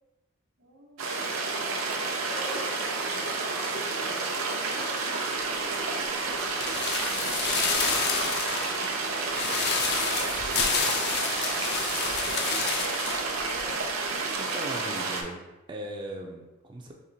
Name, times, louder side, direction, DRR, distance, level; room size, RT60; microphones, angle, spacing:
voice 1, 0.6-4.8 5.5-7.0 9.9-10.6 10.9-12.9, right 1 dB, 75° right, -1 dB, 1.0 m, -49 dB
sound 1, 1.0-15.2, right 3 dB, 90° right, 0.6 m, -30 dB
sound 2, 6.6-13.3 13.6-13.7, left 5 dB, 55° left, 0.5 m, -29 dB
voice 2, 13.5-15.4 15.7-16.9, right 1 dB, 25° right, 1 dB, 0.3 m, -39 dB
4.2 x 2.9 x 2.7 m, 1.0 s
head